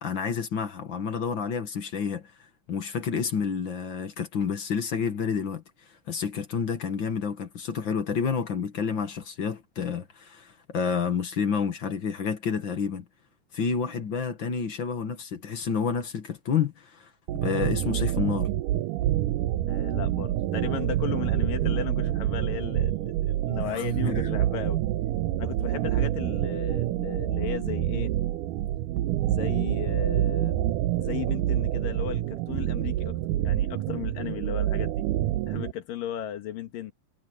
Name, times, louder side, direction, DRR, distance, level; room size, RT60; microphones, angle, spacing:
voice 1, 0.0-2.2 2.7-5.6 6.1-13.0 13.5-18.5 23.6-24.4, left 6 dB, 45° left, 1.7 m, -29 dB
sound 1, 17.3-35.7, right 13 dB, 80° right, 2.2 m, -27 dB
voice 2, 19.7-24.8 25.4-28.1 29.3-35.0 35.5-36.9, left 11 dB, 80° left, 3.4 m, -35 dB
omnidirectional pair, 3.9 m